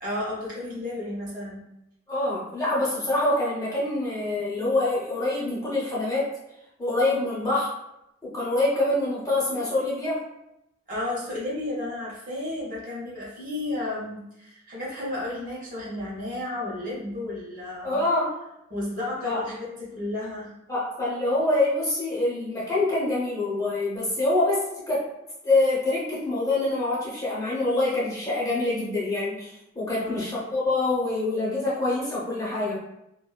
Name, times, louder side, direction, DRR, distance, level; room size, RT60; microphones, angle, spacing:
voice 1, 0.0-1.7 10.9-18.0 18.7-20.5 29.9-30.3, left 2 dB, 40° right, -6 dB, 0.8 m, -33 dB
voice 2, 2.1-6.3 6.8-7.7 8.2-10.2 17.8-18.3 19.2-19.4 20.7-25.0 25.4-29.5 29.8-32.8, left 2 dB, 15° left, -7 dB, 0.6 m, -25 dB
2.5 x 2.2 x 2.2 m, 0.85 s
head